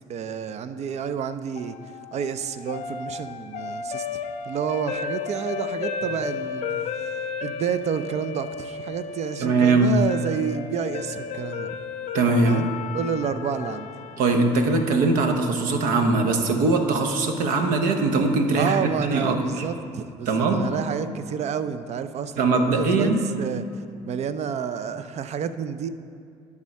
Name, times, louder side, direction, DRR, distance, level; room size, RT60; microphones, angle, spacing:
voice 1, 0.1-1.8 2.1-4.1 4.5-6.9 7.4-11.7 12.4-13.9 18.6-25.9, right 7 dB, 50° right, 12 dB, 0.5 m, -29 dB
sound 1, 1.6-15.7, left 6 dB, 60° left, 0.5 m, -34 dB
voice 2, 9.4-10.0 12.1-12.6 14.2-19.7 20.3-20.7 22.4-23.2, right 3 dB, 75° right, 5 dB, 0.9 m, -21 dB
10.5 x 3.7 x 6.4 m, 2.4 s
supercardioid pair, 70°, 14 cm